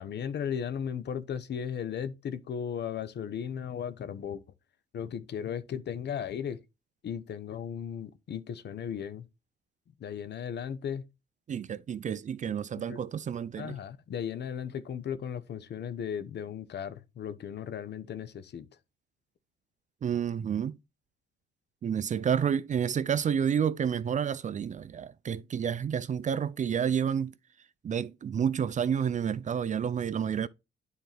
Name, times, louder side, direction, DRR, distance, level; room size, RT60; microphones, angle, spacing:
voice 1, 0.0-4.4 4.9-6.6 7.0-9.3 10.0-11.0 12.9-13.0 13.6-18.7, left 8 dB, 60° left, 0.9 m, -36 dB
voice 2, 11.5-13.8 20.0-20.8 21.8-27.3 27.8-30.5, right 8 dB, 40° right, 0.4 m, -30 dB
9.3 x 4.5 x 3.4 m
cardioid pair, 90°, 20 cm